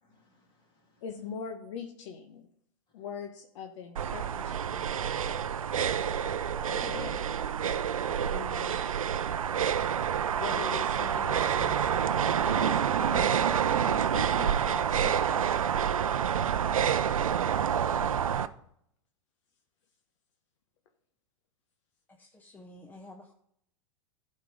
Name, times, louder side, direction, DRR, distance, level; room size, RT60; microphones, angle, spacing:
voice 1, 0.0-1.0 5.4-7.2, left 3 dB, 25° left, 0 dB, 3.1 m, -46 dB
voice 2, 1.0-2.5 2.9-4.9 8.3-8.8 10.4-13.3 13.8-15.6, left 7 dB, 60° left, 5 dB, 1.0 m, -42 dB
sound 1, 4.0-4.2 4.6-4.7 5.1-5.6 6.7-7.0 8.1-8.2 8.4-9.4, right 3 dB, 15° right, 2.5 m, -55 dB
sound 2, 4.0-18.5, right 8 dB, 85° right, 0.5 m, -28 dB
voice 3, 22.1-23.3, left 1 dB, 10° left, 3 dB, 0.9 m, -50 dB
12.0 x 4.6 x 5.1 m, 0.70 s
hypercardioid pair, 105°, 17 cm